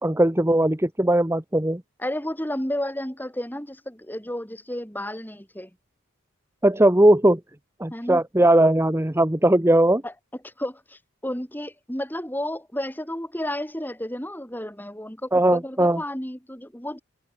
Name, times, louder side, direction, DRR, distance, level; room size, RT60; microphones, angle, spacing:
voice 1, 0.0-1.8 6.6-7.4 7.8-10.0 15.3-16.0, right 1 dB, 10° right, 1.0 m, -19 dB
voice 2, 2.0-5.7 7.9-8.2 10.0-10.1 10.4-17.0, left 1 dB, 10° left, 5.4 m, -32 dB
head